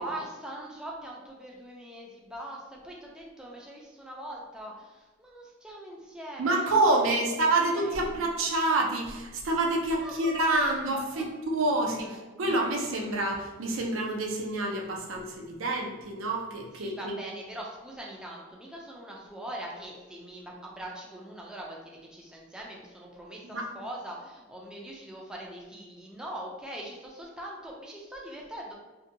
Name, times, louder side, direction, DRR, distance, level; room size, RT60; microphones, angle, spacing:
voice 1, 0.0-8.1 10.0-10.1 11.1-11.2 11.8-12.4 16.7-28.8, right 1 dB, 5° right, -3 dB, 0.3 m, -42 dB
voice 2, 6.4-17.1 23.5-23.7, right 2 dB, 75° right, 1 dB, 0.5 m, -27 dB
2.6 x 2.1 x 2.6 m, 1.2 s
head